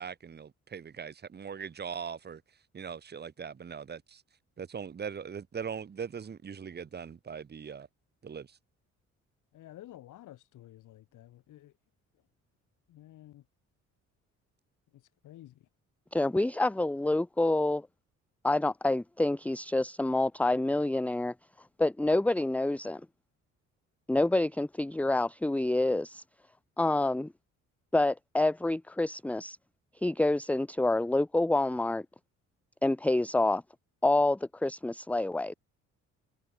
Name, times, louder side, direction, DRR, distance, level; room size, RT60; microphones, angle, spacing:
voice 1, 0.0-2.4 2.7-4.2 4.6-7.9 8.2-8.6, right 7 dB, 35° right, 1.1 m, -40 dB
voice 2, 9.5-11.7 12.9-13.4 14.9-15.7, left 14 dB, 85° left, 7.6 m, -52 dB
voice 3, 16.1-17.9 18.4-21.3 21.8-23.0 24.1-26.2 26.8-27.3 27.9-29.6 30.0-32.0 32.8-33.6 34.0-35.5, left 2 dB, 5° left, 0.7 m, -27 dB
cardioid pair, 90°, 30 cm